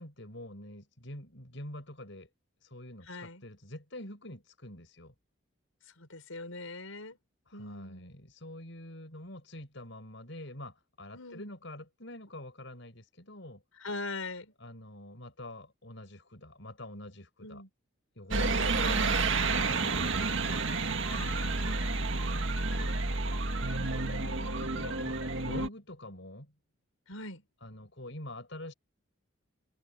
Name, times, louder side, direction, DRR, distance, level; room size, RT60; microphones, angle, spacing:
voice 1, 0.0-2.3 2.6-5.1 7.5-13.6 14.6-17.6 18.1-20.6 23.4-24.1 24.6-26.5 27.6-28.7, left 1 dB, 60° left, 6.1 m, -46 dB
voice 2, 3.1-3.4 6.0-7.2 7.5-8.2 11.1-11.5 13.8-14.5 17.4-17.7 18.3-19.1 21.1-23.1 23.8-24.7 27.1-27.4, left 2 dB, 85° left, 5.9 m, -43 dB
sound 1, 18.3-25.7, right 3 dB, 65° right, 1.9 m, -30 dB
head